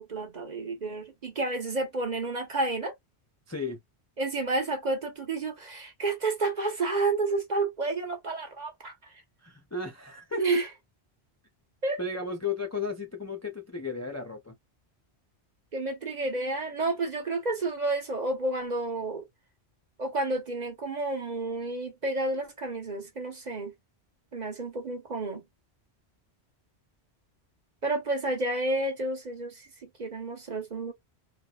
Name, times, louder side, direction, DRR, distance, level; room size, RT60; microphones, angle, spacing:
voice 1, 0.0-2.9 4.2-8.9 10.3-10.7 11.8-12.0 15.7-19.2 20.0-23.7 24.3-25.4 27.8-30.9, right 2 dB, 40° right, 1.3 m, -30 dB
voice 2, 3.5-3.8 9.4-10.6 12.0-14.5, left 4 dB, 25° left, 0.4 m, -34 dB
4.1 x 2.2 x 2.4 m
omnidirectional pair, 1.1 m